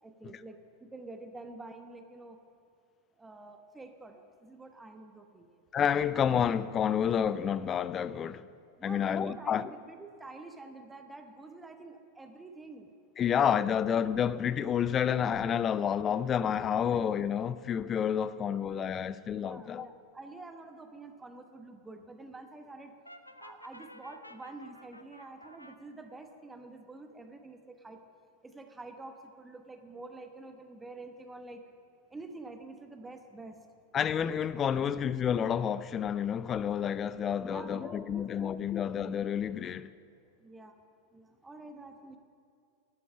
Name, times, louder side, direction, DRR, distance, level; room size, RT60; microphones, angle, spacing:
voice 1, 0.0-2.4 3.2-5.5 8.8-12.9 19.3-22.9 23.4-28.0 28.4-31.6 32.1-33.6 37.4-38.8 40.4-40.7 41.1-42.2, right 2 dB, 10° right, 1.1 m, -48 dB
voice 2, 5.7-8.5 8.8-9.7 13.2-19.9 33.9-39.9, left 8 dB, 25° left, 0.4 m, -29 dB
Brass instrument, 23.0-25.8, left 1 dB, 85° left, 0.7 m, -52 dB
11.5 x 8.3 x 9.9 m
figure-of-eight pair, 90°, 0 cm